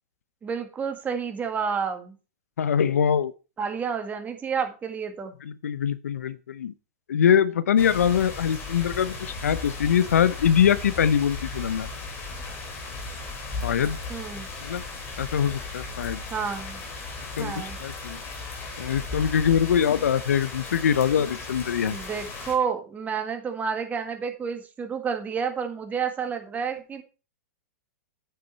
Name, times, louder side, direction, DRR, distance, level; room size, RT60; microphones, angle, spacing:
voice 1, 0.4-2.1 3.6-5.3 14.1-14.5 16.3-16.8 17.4-17.8 21.8-27.0, right 6 dB, 20° right, 6 dB, 1.8 m, -30 dB
voice 2, 2.6-3.3 5.4-6.7 7.1-11.9 13.6-14.0 14.6-14.8 15.2-16.2 17.4-18.2 18.8-22.0, left 8 dB, 80° left, 16 dB, 0.7 m, -23 dB
sound 1, 7.8-22.6, left 3 dB, 25° left, 3.5 m, -36 dB
9.0 x 6.9 x 4.4 m, 0.33 s
hypercardioid pair, 115°, 8 cm